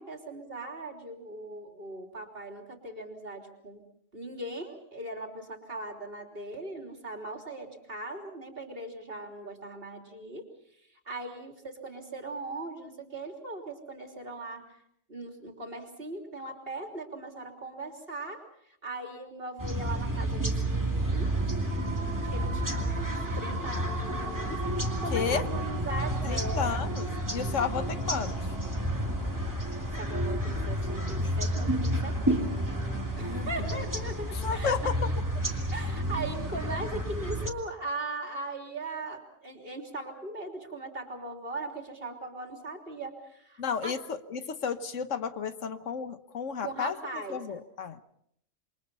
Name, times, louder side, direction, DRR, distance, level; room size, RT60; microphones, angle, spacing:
voice 1, 0.0-3.8 4.1-10.5 10.8-14.8 15.1-21.3 22.2-26.7 30.0-32.7 33.2-35.0 35.7-43.9 46.6-47.6, right 2 dB, 50° right, 3 dB, 3.6 m, -39 dB
sound 1, 19.6-37.5, right 1 dB, 15° right, 2.4 m, -31 dB
sound 2, 20.7-38.0, right 3 dB, 75° right, 2.9 m, -44 dB
sound 3, 20.9-29.5, equal, 35° left, 6.3 m, -46 dB
voice 2, 25.1-25.4 26.2-28.3 33.3-33.5 34.3-34.9 43.6-46.9 47.3-48.0, left 6 dB, 80° left, 11 dB, 1.5 m, -32 dB
28.0 x 23.0 x 5.6 m, 0.71 s
omnidirectional pair, 1.3 m